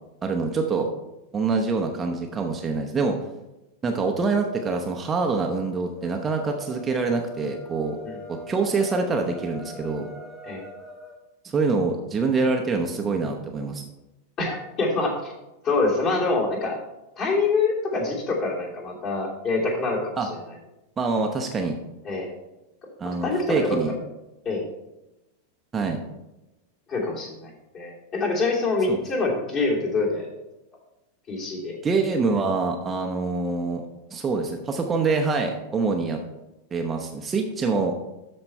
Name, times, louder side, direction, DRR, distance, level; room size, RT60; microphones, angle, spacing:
voice 1, 0.2-0.9 1.3-3.2 3.8-8.0 8.3-10.1 11.4-13.8 20.2-20.3 21.0-21.8 23.0-23.9 25.7-26.0 28.9-29.0 31.8-33.8 34.1-36.2 36.7-37.9, right 4 dB, 20° right, 3 dB, 0.9 m, -25 dB
sound 1, 5.9-11.2, left 2 dB, 15° left, 2.1 m, -42 dB
voice 2, 14.4-15.3 15.6-16.8 17.2-20.3 22.0-22.3 23.0-23.8 24.4-24.6 26.9-30.3 31.3-31.8, left 3 dB, 35° left, -2 dB, 2.8 m, -25 dB
13.0 x 4.3 x 4.4 m, 0.96 s
figure-of-eight pair, 90°, 0 cm